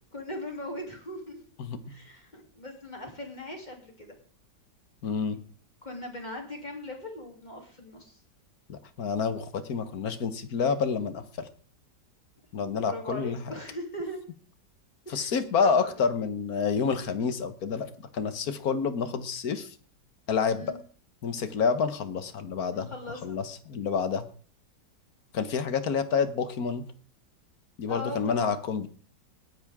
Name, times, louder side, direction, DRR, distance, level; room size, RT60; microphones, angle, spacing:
voice 1, 0.1-1.4 1.9-4.1 5.8-8.2 12.6-14.2 15.0-15.9 20.5-20.8 22.7-23.4 27.9-28.7, left 1 dB, 25° left, 2 dB, 3.1 m, -40 dB
voice 2, 1.6-1.9 5.0-5.4 8.7-11.5 12.5-13.5 15.1-19.7 20.3-20.7 21.2-22.9 23.2-24.3 25.3-26.8 27.8-28.9, left 5 dB, 60° left, 12 dB, 1.5 m, -28 dB
19.0 x 10.0 x 3.6 m, 0.43 s
omnidirectional pair, 1.9 m